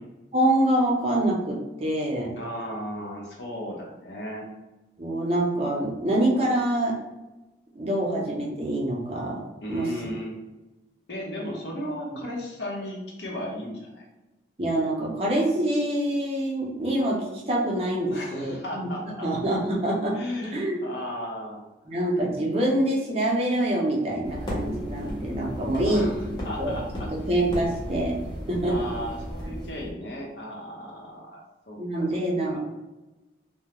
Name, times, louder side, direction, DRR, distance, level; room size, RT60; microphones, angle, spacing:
voice 1, 0.3-2.3 5.0-7.0 7.7-9.4 9.7-9.9 14.6-18.6 19.2-20.2 20.5-20.8 21.9-26.1 26.6-26.8 27.3-28.1 28.5-28.8 31.8-32.6, right 1 dB, 35° right, -2 dB, 0.5 m, -25 dB
voice 2, 2.3-4.4 9.6-10.4 11.1-14.1 18.1-19.3 20.1-21.6 25.9-27.1 28.6-32.6, left 1 dB, 80° left, -2 dB, 0.7 m, -36 dB
sound 1, 24.2-29.9, equal, 25° left, 0.5 m, -35 dB
2.2 x 2.0 x 2.9 m, 1.1 s
head